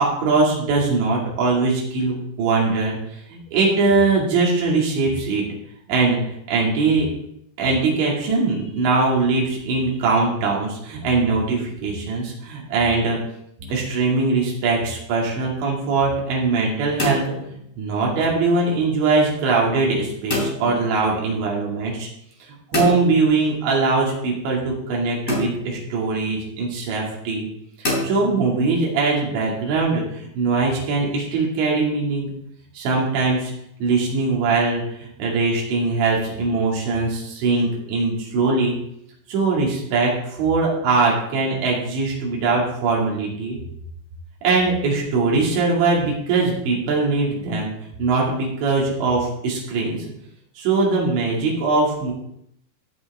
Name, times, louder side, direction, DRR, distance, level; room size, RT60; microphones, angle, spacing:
voice 1, 0.0-5.4 5.9-6.2 6.5-7.1 7.6-13.2 13.7-17.3 17.8-22.1 22.7-27.5 28.0-32.3 32.7-33.5 33.8-38.8 39.3-43.6 44.4-47.7 48.0-50.0 50.6-52.1, right 3 dB, 80° right, -3 dB, 4.8 m, -21 dB
sound 1, 13.6-14.1 16.7-18.0 20.3-20.9 22.7-23.7 25.3-26.0 27.8-28.7, left 2 dB, 20° left, 3.1 m, -28 dB
15.5 x 7.7 x 3.6 m, 0.74 s
omnidirectional pair, 5.1 m